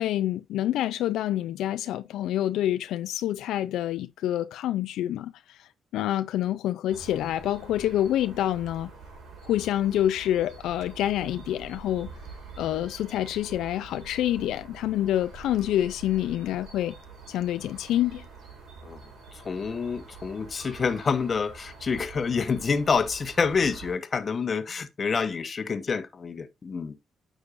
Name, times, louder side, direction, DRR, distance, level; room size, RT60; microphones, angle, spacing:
voice 1, 0.0-8.9 9.4-12.1 12.6-17.0 17.3-18.2, left 12 dB, 85° left, 0.4 m, -27 dB
sound 1, 6.9-23.9, right 4 dB, 80° right, 4.3 m, -46 dB
voice 2, 19.3-27.0, left 5 dB, 40° left, 1.0 m, -27 dB
9.7 x 6.3 x 2.5 m
cardioid pair, 90°, 0 cm